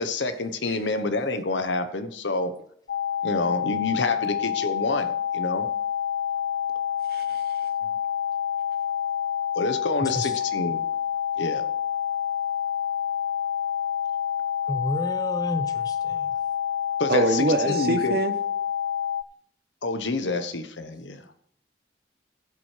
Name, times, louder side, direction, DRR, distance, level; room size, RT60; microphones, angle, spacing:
voice 1, 0.0-2.5 3.2-5.7 9.5-10.8 11.4-11.6 17.0-18.2 19.8-21.2, left 3 dB, 85° left, 1.0 m, -28 dB
sound 1, 2.9-19.2, left 9 dB, 65° left, 0.4 m, -28 dB
voice 2, 7.1-7.4 17.1-18.3, right 2 dB, 55° right, 1.0 m, -24 dB
voice 3, 10.0-10.4 14.7-16.3, equal, 20° left, 0.8 m, -31 dB
16.0 x 7.6 x 3.3 m
head